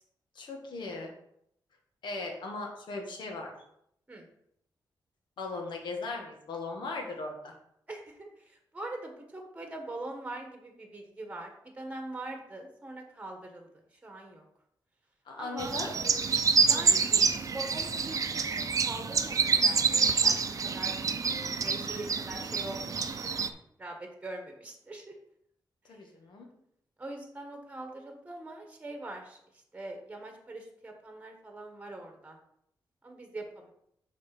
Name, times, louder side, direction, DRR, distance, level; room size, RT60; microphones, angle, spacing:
voice 1, 0.3-1.1 2.0-3.5 5.4-7.5 15.2-15.9 25.9-26.5, left 3 dB, 80° left, 1 dB, 1.7 m, -38 dB
voice 2, 7.9-14.4 15.4-15.8 16.7-17.2 17.5-20.4 20.6-25.2 25.8-26.0 27.0-32.4 33.0-33.7, right 2 dB, 15° right, 3 dB, 1.4 m, -43 dB
sound 1, 15.6-23.5, right 5 dB, 45° right, 0.6 m, -27 dB
6.4 x 4.2 x 5.9 m, 0.73 s
wide cardioid pair, 125°, 8 cm